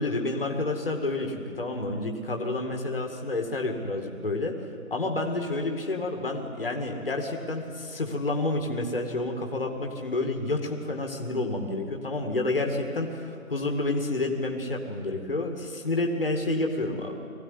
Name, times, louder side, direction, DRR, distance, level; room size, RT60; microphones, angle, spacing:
voice 1, 0.0-4.5 4.9-17.2, left 2 dB, 40° left, 2 dB, 2.1 m, -29 dB
21.0 x 15.5 x 9.6 m, 2.3 s
figure-of-eight pair, 175°, 42 cm